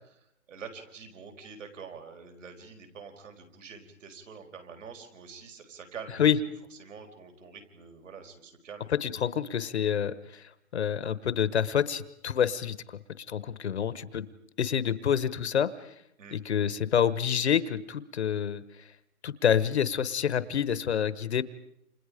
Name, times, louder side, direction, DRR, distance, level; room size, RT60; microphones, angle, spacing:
voice 1, 0.5-6.2 6.8-8.9 16.2-16.4, right 5 dB, 55° right, 5 dB, 5.2 m, -46 dB
voice 2, 9.0-10.4 10.7-14.3 14.6-15.7 16.3-18.6 19.2-21.4, left 8 dB, 50° left, 16 dB, 1.1 m, -27 dB
29.5 x 27.0 x 5.1 m, 0.77 s
hypercardioid pair, 165°, 44 cm